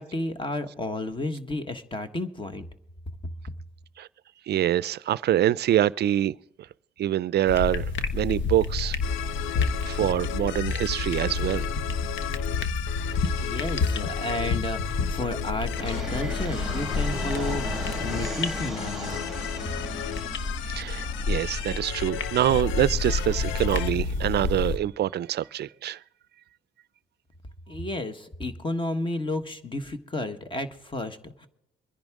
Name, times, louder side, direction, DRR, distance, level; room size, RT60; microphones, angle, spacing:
voice 1, 0.0-2.7 13.4-19.2 27.7-31.5, left 2 dB, 25° left, 1.4 m, -32 dB
voice 2, 4.5-6.4 7.0-9.0 9.5-11.7 20.6-26.0, right 12 dB, 55° right, 0.4 m, -25 dB
sound 1, 7.5-24.8, left 4 dB, 70° left, 1.2 m, -30 dB
sound 2, 9.0-23.9, left 12 dB, 90° left, 0.5 m, -36 dB
Fixed-wing aircraft airplane, 15.8-24.8, right 2 dB, ahead, 2.1 m, -39 dB
24.0 x 10.5 x 3.7 m
cardioid pair, 90°, 20 cm